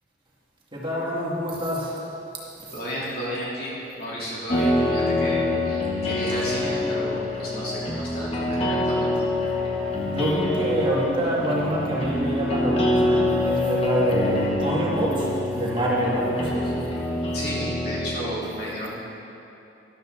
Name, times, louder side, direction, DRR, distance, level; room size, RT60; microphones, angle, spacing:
voice 1, 0.7-2.0 2.7-2.8 9.9-16.8, equal, 30° right, -6 dB, 2.1 m, -26 dB
voice 2, 2.7-9.1 17.3-18.9, equal, 60° left, -7 dB, 3.3 m, -32 dB
sound 1, 4.5-18.2, left 1 dB, 35° left, 1.6 m, -25 dB
13.0 x 12.0 x 3.9 m, 2.9 s
head